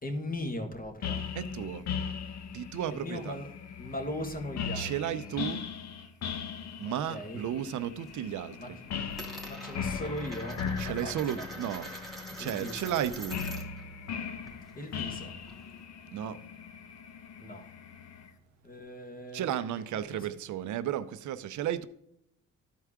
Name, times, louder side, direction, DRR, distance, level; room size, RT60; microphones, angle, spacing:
voice 1, 0.0-1.3 2.9-5.3 6.8-7.4 8.6-8.7 9.4-11.5 12.4-12.9 14.8-15.4 17.4-17.7 18.6-19.6 19.9-20.3, left 1 dB, 30° left, 1.7 m, -39 dB
sound 1, 1.0-18.3, left 6 dB, 65° left, 0.9 m, -39 dB
voice 2, 1.4-1.9 2.5-3.4 4.7-5.6 6.8-8.6 10.8-11.9 12.4-13.4 16.1-16.4 19.3-21.9, right 10 dB, 75° right, 0.7 m, -33 dB
Coin (dropping), 6.3-7.5 7.8-8.3 8.5-13.8 14.1-15.8, right 1 dB, ahead, 2.6 m, -45 dB
12.5 x 4.6 x 3.6 m
cardioid pair, 90°, 30 cm